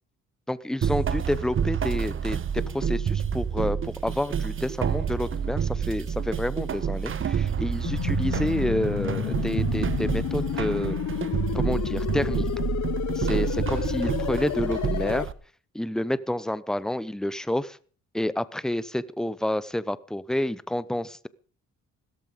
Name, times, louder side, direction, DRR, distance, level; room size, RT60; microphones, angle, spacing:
voice 1, 0.5-11.0 11.5-12.5 13.1-15.3 15.7-17.8 18.1-21.3, left 1 dB, ahead, 17 dB, 0.8 m, -29 dB
sound 1, 0.8-15.3, right 7 dB, 45° right, 1.2 m, -28 dB
sound 2, 7.9-15.3, left 13 dB, 65° left, 0.9 m, -31 dB
16.5 x 13.5 x 5.2 m, 0.42 s
cardioid pair, 90°, 30 cm